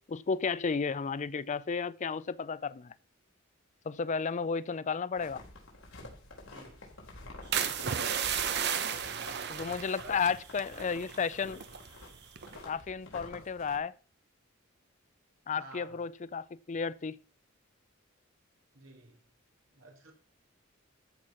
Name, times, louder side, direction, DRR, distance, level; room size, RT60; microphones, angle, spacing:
voice 1, 0.1-2.9 3.9-5.4 9.5-11.6 12.7-13.9 15.5-17.2, left 5 dB, 35° left, 0.4 m, -33 dB
sound 1, 5.1-13.8, left 2 dB, 70° left, 3.9 m, -50 dB
voice 2, 6.4-6.9 9.0-9.4 10.0-10.3 15.5-16.0 18.7-19.2 19.7-20.1, right 2 dB, 70° right, 3.0 m, -51 dB
sound 2, 7.5-11.9 12.4-12.7, right 8 dB, 55° right, 0.9 m, -33 dB
14.0 x 4.7 x 5.7 m
head